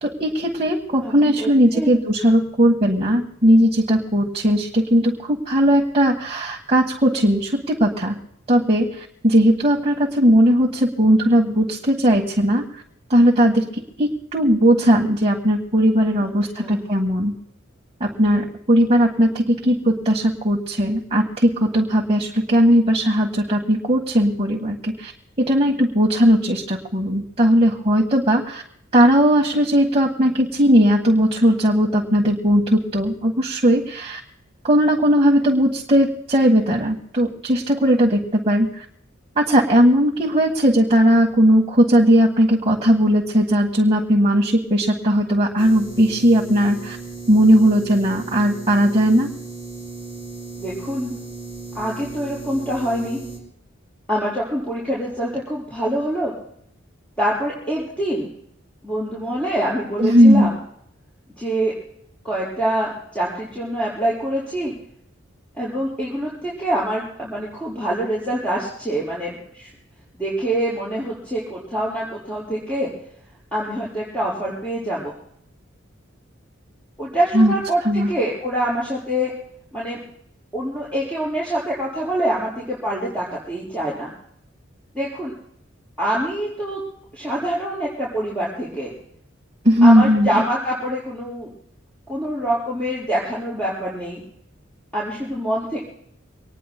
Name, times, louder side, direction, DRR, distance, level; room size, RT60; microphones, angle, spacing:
voice 1, 0.0-8.2 8.5-12.8 13.1-17.3 18.0-25.1 25.4-28.6 28.9-34.2 34.6-38.8 39.3-47.0 47.3-49.3 60.0-60.5 77.3-77.5 77.8-78.1 89.6-90.4, equal, 30° right, 0 dB, 1.6 m, -17 dB
voice 2, 1.4-1.9 16.6-16.8 50.6-51.1 51.8-53.2 54.1-56.3 57.2-58.3 58.8-60.5 61.4-61.7 62.2-64.7 65.6-69.7 70.2-72.9 73.5-75.1 77.0-79.3 79.7-80.0 80.5-84.1 84.9-85.3 86.0-86.8 87.1-88.9 89.8-91.5 92.1-94.2 94.9-95.8, right 1 dB, 5° left, -7 dB, 5.3 m, -25 dB
sound 1, 45.6-53.4, right 3 dB, 25° left, 6.2 m, -36 dB
25.0 x 20.0 x 2.2 m, 0.70 s
head